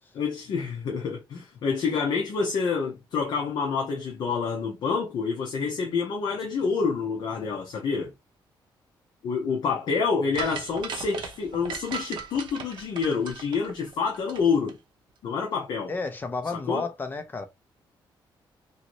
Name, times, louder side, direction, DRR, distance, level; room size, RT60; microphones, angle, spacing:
voice 1, 0.1-8.1 9.2-14.8 15.2-15.9 16.5-16.9, left 5 dB, 60° left, 0.7 m, -27 dB
sound 1, 10.3-14.4 14.7-14.8, right 6 dB, 65° right, 0.7 m, -37 dB
voice 2, 15.9-17.5, left 3 dB, 25° left, 0.5 m, -31 dB
2.7 x 2.6 x 3.0 m
cardioid pair, 165°, 9 cm